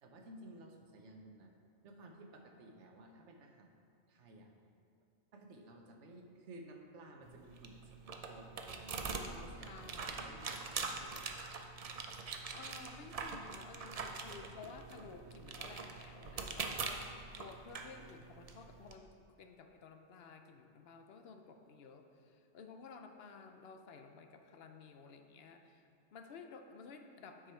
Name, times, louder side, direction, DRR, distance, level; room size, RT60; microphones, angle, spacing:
voice 1, 0.0-1.5 1.8-3.7 4.1-4.5 5.3-11.2, right 1 dB, 90° right, 3 dB, 1.1 m, -55 dB
sound 1, 7.2-18.9, right 4 dB, 50° right, 0.4 m, -44 dB
voice 2, 9.6-10.3 12.1-19.1 19.4-27.5, left 5 dB, 65° left, 5 dB, 0.8 m, -54 dB
8.7 x 4.9 x 4.4 m, 2.6 s
omnidirectional pair, 1.2 m